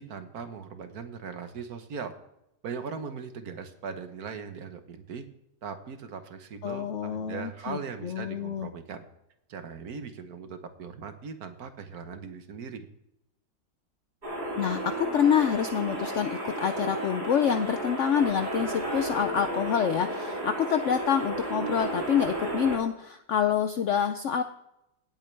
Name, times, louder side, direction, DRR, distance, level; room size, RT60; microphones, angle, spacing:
voice 1, 0.0-2.1 2.6-5.2 5.6-9.0 9.5-12.9, right 6 dB, 65° right, 8 dB, 1.5 m, -39 dB
voice 2, 6.6-8.7 14.6-24.4, left 8 dB, 70° left, 9 dB, 0.7 m, -27 dB
sound 1, 14.2-22.8, right 1 dB, 25° right, 3.0 m, -33 dB
17.5 x 8.4 x 3.3 m, 0.84 s
omnidirectional pair, 1.8 m